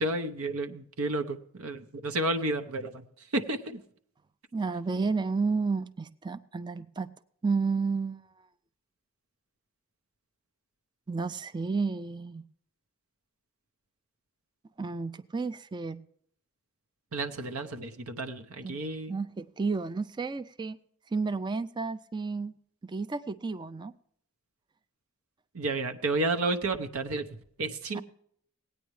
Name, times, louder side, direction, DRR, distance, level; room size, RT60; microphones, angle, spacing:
voice 1, 0.0-3.8 17.1-19.2 25.5-27.3 27.6-28.0, right 2 dB, 85° right, 6 dB, 0.9 m, -31 dB
voice 2, 4.5-7.1 7.4-8.2 11.1-12.4 14.8-16.0 18.6-18.7 19.1-20.8 21.1-22.6 22.8-23.9 27.9-28.0, right 4 dB, 20° right, 13 dB, 0.4 m, -31 dB
17.5 x 9.4 x 3.2 m, 0.64 s
head